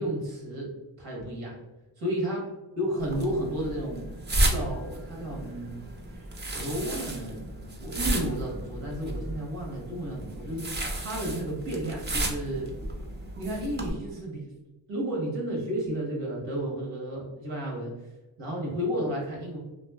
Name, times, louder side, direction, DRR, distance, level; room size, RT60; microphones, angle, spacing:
voice 1, 0.0-1.5 2.0-2.4 2.8-4.1 4.5-5.8 6.1-6.2 6.5-7.4 7.8-10.7 11.0-12.7 13.4-14.5 14.9-17.9 18.4-19.6, right 1 dB, 85° right, -2 dB, 1.0 m, -32 dB
sound 1, 3.0-13.9, right 1 dB, 25° right, 0.5 m, -33 dB
2.5 x 2.3 x 2.2 m, 1.1 s
cardioid pair, 55°, 47 cm